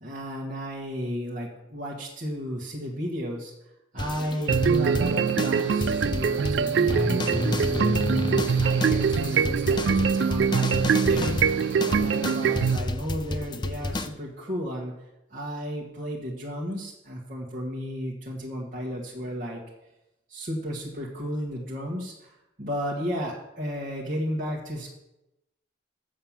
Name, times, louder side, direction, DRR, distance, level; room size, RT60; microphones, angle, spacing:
voice 1, 0.0-3.5 3.9-8.0 8.6-14.9 15.3-19.6 20.3-24.9, equal, 45° right, -4 dB, 1.4 m, -33 dB
sound 1, 4.0-14.1, left 2 dB, 25° left, 0.5 m, -30 dB
sound 2, 4.5-12.8, right 6 dB, 65° right, 0.3 m, -24 dB
7.6 x 6.6 x 7.2 m, 0.91 s
head